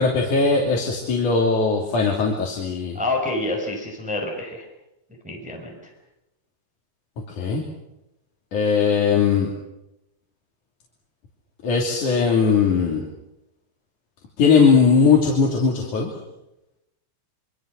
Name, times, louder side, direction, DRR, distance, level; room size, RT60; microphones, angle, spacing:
voice 1, 0.0-3.0 7.4-7.6 8.5-9.5 11.6-13.0 14.4-16.1, left 5 dB, 50° left, -1 dB, 4.3 m, -19 dB
voice 2, 2.9-4.6 5.2-5.9, left 2 dB, ahead, 0 dB, 5.2 m, -28 dB
26.5 x 25.5 x 6.6 m, 0.90 s
omnidirectional pair, 4.6 m